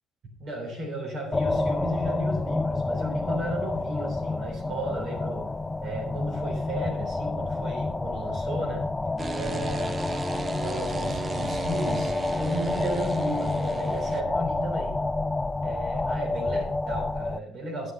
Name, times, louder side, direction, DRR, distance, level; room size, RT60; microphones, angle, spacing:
voice 1, 0.4-5.4 5.8-8.8 9.4-10.1 10.6-15.0 15.6-17.9, right 1 dB, 60° right, 0 dB, 3.3 m, -34 dB
sound 1, 1.3-17.4, left 2 dB, 15° left, 0.4 m, -29 dB
sound 2, 9.2-14.2, right 3 dB, 30° right, 0.7 m, -35 dB
9.6 x 6.2 x 5.4 m, 0.74 s
cardioid pair, 100°, 0 cm